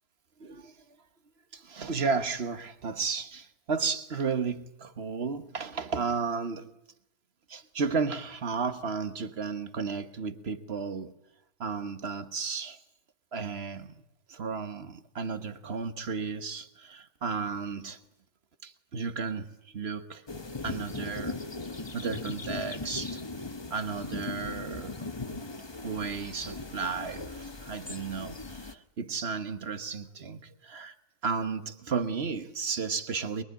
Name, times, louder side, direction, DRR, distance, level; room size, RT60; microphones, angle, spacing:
voice 1, 0.4-1.0 1.5-6.7 7.5-11.1 11.6-12.8 13.3-14.0 14.3-18.0 18.6-20.2 20.6-21.4 21.9-23.2 23.7-25.0 25.8-30.9 31.2-33.4, right 5 dB, 45° right, 1.4 m, -33 dB
sound 1, 20.3-28.7, left 3 dB, 20° left, 0.9 m, -38 dB
24.5 x 22.5 x 9.7 m
omnidirectional pair, 1.6 m